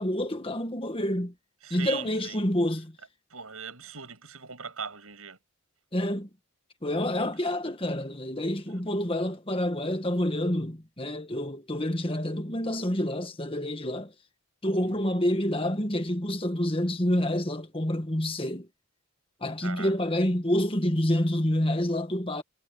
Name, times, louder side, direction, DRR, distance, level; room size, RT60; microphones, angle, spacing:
voice 1, 0.0-1.3 1.7-3.0 5.9-6.3 6.8-14.1 14.6-18.7 19.4-22.4, left 1 dB, 25° left, 1.8 m, -28 dB
voice 2, 1.6-2.4 3.3-5.4 7.2-7.3 14.8-15.2 19.6-19.9, right 6 dB, 75° right, 6.9 m, -40 dB
head